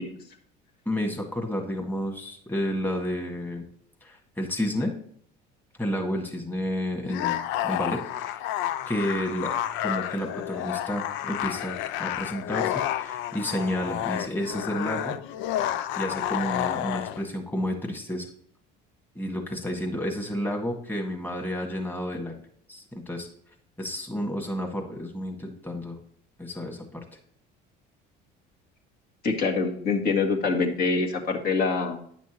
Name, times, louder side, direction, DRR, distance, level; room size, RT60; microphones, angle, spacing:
voice 1, 0.9-3.6 4.0-4.9 5.8-8.4 8.9-9.5 9.8-15.2 16.0-18.3 19.2-22.4 22.7-23.3 23.8-26.0 26.4-27.0, equal, 10° left, 2 dB, 1.8 m, -31 dB
sound 1, 7.0-17.2, left 12 dB, 70° left, 0.5 m, -30 dB
voice 2, 29.2-32.0, left 4 dB, 50° left, 1 dB, 1.9 m, -25 dB
9.4 x 6.1 x 3.0 m, 0.62 s
supercardioid pair, 100°, 20 cm